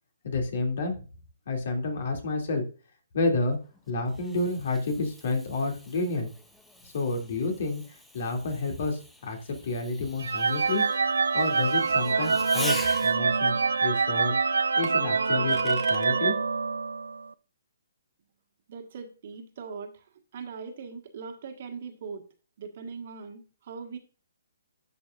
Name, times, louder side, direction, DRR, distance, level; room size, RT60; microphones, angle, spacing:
voice 1, 0.2-1.0 1.5-2.6 3.1-3.6 3.9-6.3 6.8-10.8 11.3-14.4 14.8-16.3, left 3 dB, 55° left, 3 dB, 2.6 m, -30 dB
Fireworks, 3.5-13.4 14.8-16.1, left 1 dB, 5° left, 0.7 m, -44 dB
sound 1, 10.2-17.2, right 4 dB, 80° right, 0.5 m, -25 dB
voice 2, 18.7-20.0 20.3-22.3 22.6-24.0, right 5 dB, 50° right, 5 dB, 1.6 m, -40 dB
10.5 x 5.9 x 2.5 m, 0.36 s
hypercardioid pair, 145°, 0 cm